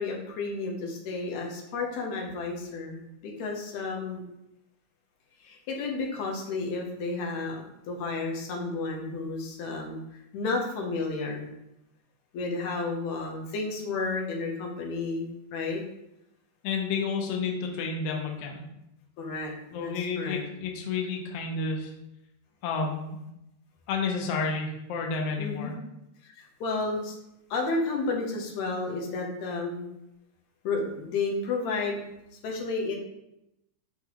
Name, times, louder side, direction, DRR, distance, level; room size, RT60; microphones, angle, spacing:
voice 1, 0.0-4.2 5.4-10.0 10.3-11.5 12.3-15.8 19.2-20.4 25.4-25.7 26.2-27.2 27.5-29.9 30.6-32.0 32.4-33.0, left 3 dB, 75° left, 0 dB, 2.0 m, -32 dB
voice 2, 16.6-18.6 19.7-21.9 22.6-23.2 23.9-25.7, left 4 dB, 90° left, 1 dB, 1.3 m, -30 dB
5.7 x 2.8 x 2.9 m, 0.85 s
omnidirectional pair, 3.5 m